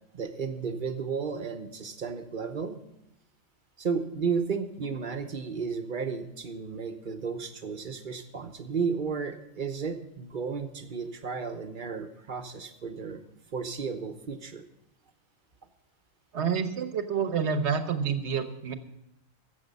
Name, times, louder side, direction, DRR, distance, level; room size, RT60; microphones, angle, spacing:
voice 1, 0.1-2.8 3.8-13.2 13.5-14.6, right 5 dB, 40° right, 8 dB, 1.0 m, -33 dB
voice 2, 16.3-18.7, right 6 dB, 60° right, 9 dB, 1.2 m, -28 dB
15.5 x 7.0 x 5.3 m, 0.80 s
omnidirectional pair, 1.4 m